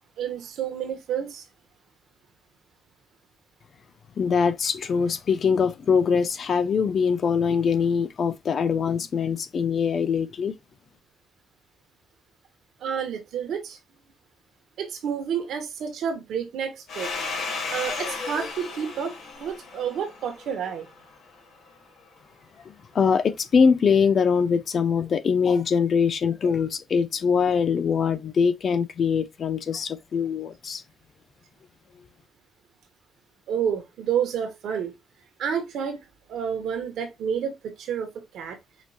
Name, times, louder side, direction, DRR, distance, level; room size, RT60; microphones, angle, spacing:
voice 1, 0.2-1.4 12.8-13.8 14.8-17.1 17.7-19.1 19.4-20.9 33.5-34.9 35.4-36.0 36.3-38.1 38.3-38.6, right 8 dB, 75° right, 1.8 m, -29 dB
voice 2, 4.2-10.6 22.7-30.8, left 6 dB, 50° left, 0.7 m, -23 dB
Domestic sounds home sounds, 16.9-21.3, left 4 dB, 70° left, 2.8 m, -34 dB
5.8 x 3.0 x 2.6 m
cardioid pair, 90°, 0 cm